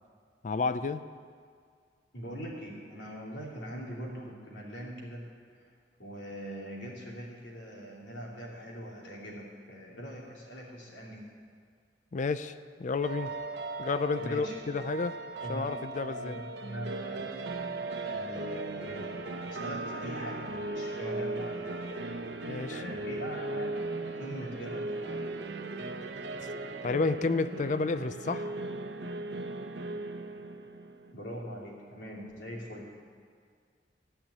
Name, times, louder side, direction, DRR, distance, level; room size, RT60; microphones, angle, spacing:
voice 1, 0.4-1.0 12.1-13.3 13.8-15.1 15.5-16.4 22.5-22.8 26.8-28.6, left 4 dB, 45° left, 12 dB, 0.4 m, -31 dB
voice 2, 2.1-5.2 5.6-5.7 6.0-11.2 14.1-14.5 15.4-17.4 18.0-21.9 22.6-23.8 24.1-25.5 31.1-32.9, equal, 85° left, -3 dB, 3.0 m, -42 dB
sound 1, 13.0-31.1, right 2 dB, 70° right, 0.8 m, -37 dB
14.5 x 5.7 x 9.4 m, 2.1 s
head